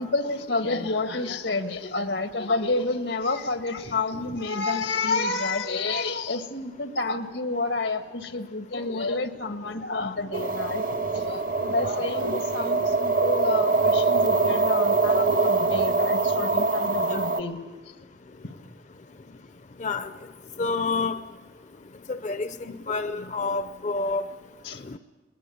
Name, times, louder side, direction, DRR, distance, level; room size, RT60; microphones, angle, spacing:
voice 1, 0.0-17.6 18.4-18.5 24.6-24.8, left 3 dB, 85° left, 1.7 m, -29 dB
sound 1, 10.3-17.4, right 3 dB, 50° right, 1.0 m, -23 dB
voice 2, 19.8-20.1 20.6-21.2 22.1-24.3 24.8-25.0, left 3 dB, 40° left, 0.6 m, -28 dB
21.5 x 20.0 x 8.5 m
head